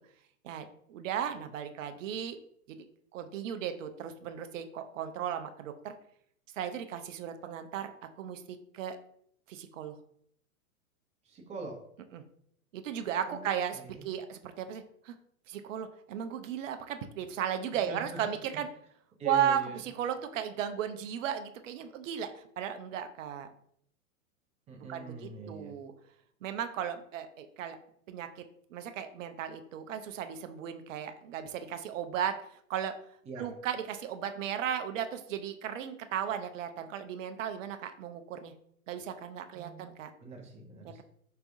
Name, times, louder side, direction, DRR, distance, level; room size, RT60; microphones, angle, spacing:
voice 1, 0.4-2.4 2.7-2.8 3.1-5.9 6.6-9.0 9.5-10.0 12.1-12.2 12.7-15.1 15.5-18.7 19.2-23.5 24.9-25.9 26.4-27.8 28.1-28.4 28.7-32.9 33.4-38.5 38.9-40.1 40.8-41.0, right 9 dB, 60° right, 8 dB, 0.6 m, -35 dB
voice 2, 11.2-11.8 13.3-13.4 13.7-14.1 17.7-18.0 19.2-19.8 24.7-25.8 33.2-33.5 39.5-39.9 40.2-41.0, right 3 dB, 15° right, 0 dB, 0.7 m, -43 dB
4.6 x 3.3 x 2.6 m, 0.68 s
hypercardioid pair, 130°, 44 cm